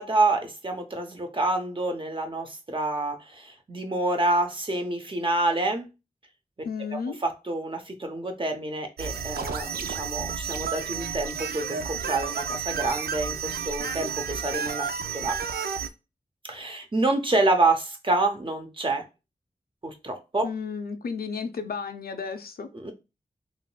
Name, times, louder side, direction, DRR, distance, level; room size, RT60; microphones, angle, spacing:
voice 1, 0.0-5.9 7.2-14.9 15.1-15.4 16.4-19.0 19.8-20.5 22.7-22.9, right 2 dB, 35° right, 0.7 m, -27 dB
voice 2, 6.6-7.2 20.4-22.7, left 5 dB, 80° left, 0.5 m, -33 dB
sound 1, 9.0-15.9, right 6 dB, 90° right, 0.4 m, -31 dB
3.7 x 2.4 x 2.2 m
wide cardioid pair, 55°, 16 cm